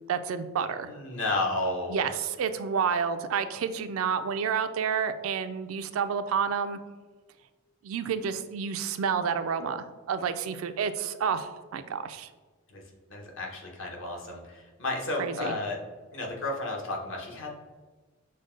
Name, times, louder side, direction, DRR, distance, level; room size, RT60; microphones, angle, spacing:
voice 1, 0.1-0.9 1.9-6.8 7.8-12.3 15.2-15.6, right 6 dB, 80° right, 10 dB, 0.4 m, -29 dB
voice 2, 0.9-2.0 12.7-12.8 13.1-15.8 16.1-17.5, left 2 dB, 65° left, 0 dB, 1.0 m, -32 dB
6.3 x 2.2 x 3.7 m, 1.3 s
head